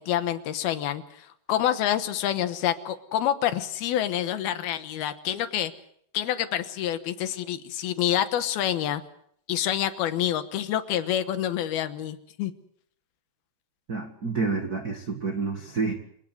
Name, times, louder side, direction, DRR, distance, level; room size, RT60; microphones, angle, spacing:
voice 1, 0.0-5.7 6.1-9.0 9.5-12.5, left 11 dB, 75° left, 11 dB, 2.9 m, -27 dB
voice 2, 13.9-15.9, right 4 dB, 60° right, 6 dB, 1.0 m, -29 dB
27.5 x 17.5 x 7.8 m, 0.68 s
omnidirectional pair, 4.8 m